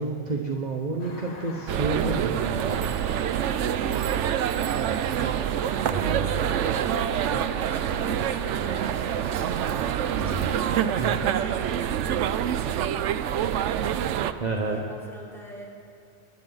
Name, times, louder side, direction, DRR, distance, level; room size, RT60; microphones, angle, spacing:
voice 1, 0.0-2.8 5.9-6.3 10.2-10.5 10.9-11.1 14.4-14.8, right 3 dB, 40° right, 1 dB, 1.0 m, -29 dB
sound 1, 1.0-11.8, left 2 dB, 35° left, 1.4 m, -43 dB
sound 2, 1.7-14.3, right 10 dB, 85° right, 0.9 m, -26 dB
voice 2, 5.2-9.0 10.0-12.6 14.6-15.6, equal, ahead, -6 dB, 3.3 m, -43 dB
21.5 x 10.5 x 3.9 m, 2.7 s
omnidirectional pair, 1.2 m